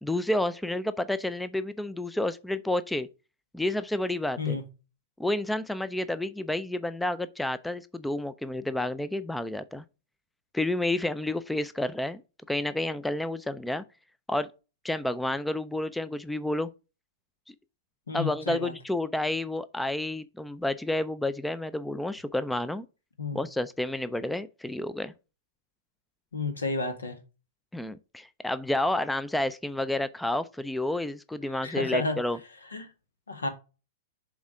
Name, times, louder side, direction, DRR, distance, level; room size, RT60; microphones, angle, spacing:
voice 1, 0.0-3.1 3.5-4.6 5.2-9.8 10.5-12.2 12.5-13.8 14.3-14.5 14.8-16.7 18.1-22.9 23.3-25.1 27.7-32.4, left 1 dB, 5° left, 0.4 m, -30 dB
voice 2, 18.1-18.7 23.2-23.4 26.3-27.2 31.5-32.2 32.7-32.9 33.3-33.5, left 3 dB, 80° left, 1.7 m, -31 dB
7.1 x 3.7 x 4.8 m
figure-of-eight pair, 105°, 0 cm